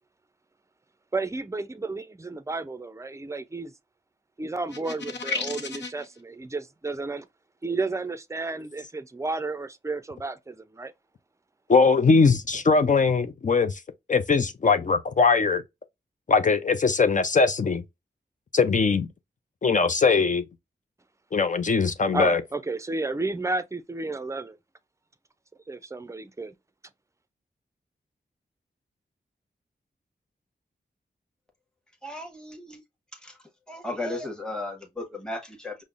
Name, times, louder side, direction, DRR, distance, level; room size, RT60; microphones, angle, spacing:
voice 1, 1.1-3.7 4.4-7.3 7.6-10.9 22.1-24.6 25.7-26.5, right 3 dB, 15° right, 0.4 m, -32 dB
sound 1, 4.7-6.0, left 4 dB, 85° left, 0.7 m, -32 dB
voice 2, 11.7-13.8 14.1-15.6 16.3-17.8 18.5-19.1 19.6-20.4 21.3-22.4, left 4 dB, 45° left, 0.5 m, -21 dB
voice 3, 32.0-32.8 33.1-33.4 33.7-35.8, left 2 dB, 5° left, 1.1 m, -35 dB
5.2 x 2.1 x 2.4 m
wide cardioid pair, 70°, 18 cm